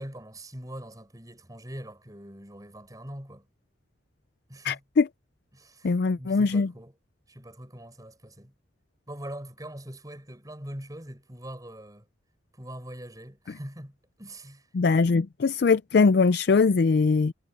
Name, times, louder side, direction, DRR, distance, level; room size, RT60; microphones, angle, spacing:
voice 1, 0.0-3.5 4.5-4.8 5.5-6.9 7.3-8.5 9.1-12.1 12.5-14.7, right 1 dB, 20° right, 7.0 m, -42 dB
voice 2, 4.7-5.1 5.8-6.7 14.7-17.3, left 4 dB, 60° left, 0.4 m, -21 dB
head